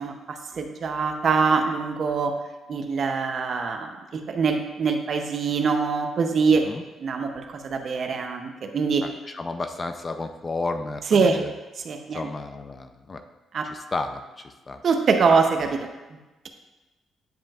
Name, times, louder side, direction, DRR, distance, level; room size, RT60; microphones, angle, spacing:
voice 1, 0.0-2.3 2.7-6.6 7.0-9.0 11.1-11.4 11.8-12.2 13.5-13.7 14.8-16.2, right 5 dB, 55° right, 5 dB, 0.7 m, -24 dB
voice 2, 9.0-11.5 12.1-13.2 13.7-14.8, left 3 dB, 30° left, 7 dB, 0.5 m, -32 dB
9.0 x 5.1 x 2.4 m, 1.1 s
cardioid pair, 90°, 0 cm